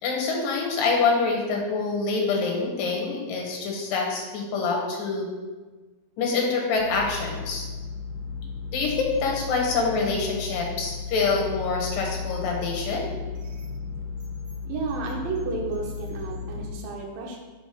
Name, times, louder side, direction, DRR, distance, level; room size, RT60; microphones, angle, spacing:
voice 1, 0.0-5.3 6.2-7.6 8.7-13.0, left 4 dB, 65° left, -1 dB, 2.6 m, -26 dB
sound 1, 6.7-16.7, left 5 dB, 85° right, 1.5 m, -35 dB
voice 2, 14.6-17.4, right 4 dB, 70° right, -1 dB, 2.6 m, -32 dB
6.2 x 5.1 x 5.0 m, 1.3 s
omnidirectional pair, 4.7 m